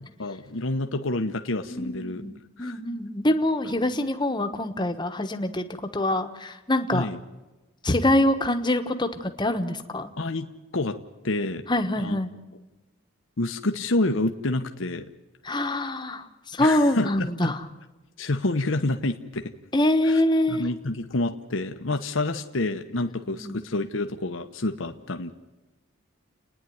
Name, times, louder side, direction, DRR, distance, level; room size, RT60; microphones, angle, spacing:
voice 1, 0.2-2.2 2.6-2.8 6.9-7.2 10.2-10.5 10.7-11.0 11.2-11.6 12.0-12.2 13.4-15.1 16.6-17.5 18.2-19.4 20.0-20.2 20.5-25.3, left 2 dB, 75° left, 6 dB, 1.1 m, -28 dB
voice 2, 1.7-2.3 2.6-5.7 5.9-7.1 7.8-10.1 11.7-12.3 15.4-17.6 19.7-20.6 23.3-23.6, left 1 dB, 20° left, 6 dB, 1.3 m, -25 dB
30.0 x 10.0 x 9.4 m, 1.1 s
head